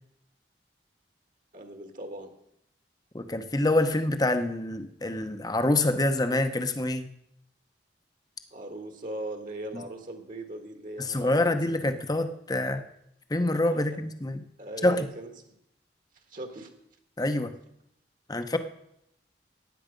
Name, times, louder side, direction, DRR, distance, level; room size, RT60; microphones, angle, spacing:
voice 1, 1.5-2.3 8.5-11.8 13.6-14.0 14.6-15.5 16.3-16.7, right 1 dB, 45° right, 5 dB, 1.6 m, -40 dB
voice 2, 3.1-7.1 9.7-9.8 11.0-12.9 13.3-14.4 14.8-15.1 17.2-17.5 18.3-18.6, left 1 dB, 20° left, 9 dB, 0.9 m, -26 dB
15.5 x 9.7 x 5.2 m, 0.78 s
head